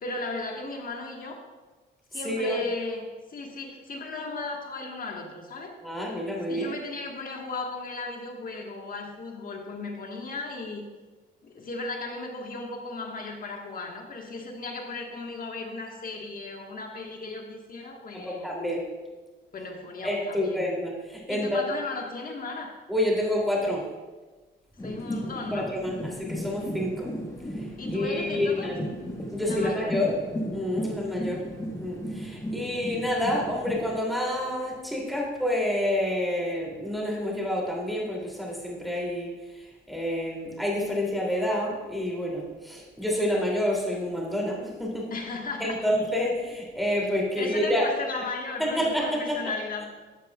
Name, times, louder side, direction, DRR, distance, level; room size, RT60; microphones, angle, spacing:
voice 1, 0.0-1.4 2.1-5.8 6.5-10.9 11.4-18.5 19.5-20.6 21.3-22.7 24.8-25.7 27.8-28.7 29.4-30.1 45.1-45.8 47.4-49.9, left 3 dB, 45° left, 2 dB, 1.4 m, -36 dB
voice 2, 2.2-2.6 5.8-6.7 18.1-18.8 20.0-21.7 22.9-23.8 25.5-27.1 27.6-28.9 29.3-30.1 30.5-31.4 31.8-45.1 45.6-47.9 48.6-49.4, left 1 dB, ahead, -3 dB, 2.7 m, -28 dB
sound 1, 24.8-34.0, equal, 15° left, 1.4 m, -35 dB
12.0 x 7.4 x 2.3 m, 1.3 s
cardioid pair, 90°, 20 cm